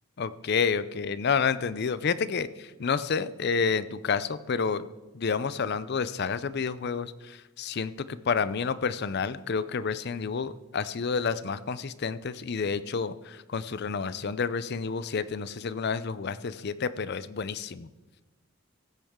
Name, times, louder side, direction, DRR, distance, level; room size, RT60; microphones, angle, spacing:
voice 1, 0.2-4.8 5.1-17.9, left 5 dB, 50° left, 15 dB, 0.5 m, -29 dB
16.0 x 8.6 x 3.6 m, 1.2 s
head